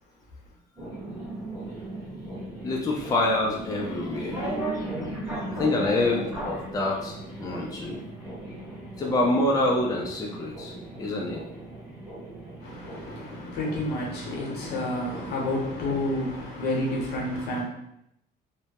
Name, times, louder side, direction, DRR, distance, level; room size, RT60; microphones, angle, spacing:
sound 1, 0.8-16.2, right 1 dB, 15° right, 1.1 m, -37 dB
voice 1, 2.6-4.6 5.6-8.0 9.0-10.7 11.0-11.4, left 2 dB, 20° left, 0.4 m, -26 dB
voice 2, 12.6-17.6, left 1 dB, 75° left, 0.8 m, -30 dB
2.1 x 2.0 x 2.8 m
cardioid pair, 110°, 17 cm